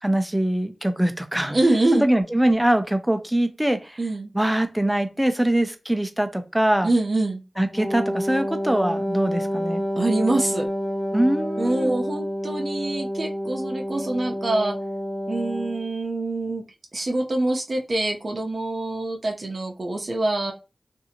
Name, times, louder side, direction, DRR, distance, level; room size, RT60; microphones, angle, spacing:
voice 1, 0.0-1.6 1.9-4.0 4.3-6.9 7.6-9.8 11.1-11.9, right 1 dB, 5° right, 0.5 m, -23 dB
voice 2, 1.5-2.1 4.0-4.3 6.8-7.4 10.0-10.7 11.6-14.8 15.3-16.6 16.9-20.5, right 2 dB, 50° right, 0.6 m, -25 dB
Wind instrument woodwind instrument, 7.7-15.9, equal, 20° left, 1.0 m, -29 dB
2.7 x 2.5 x 2.7 m
wide cardioid pair, 65°, 0 cm